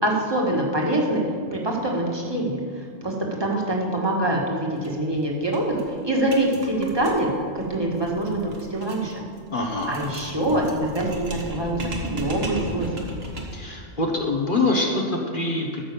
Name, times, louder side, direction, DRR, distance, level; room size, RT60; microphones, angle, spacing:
voice 1, 0.0-1.2 1.5-2.6 3.0-3.1 3.4-7.3 7.5-9.1 9.9-12.9, right 1 dB, 20° right, -1 dB, 1.8 m, -24 dB
sound 1, 4.8-4.9 5.2-5.3 5.5-13.7, right 1 dB, 55° right, 1.7 m, -35 dB
voice 2, 9.5-9.9 13.5-15.8, left 2 dB, 45° left, 0 dB, 1.3 m, -24 dB
13.0 x 6.2 x 7.0 m, 2.1 s
omnidirectional pair, 1.2 m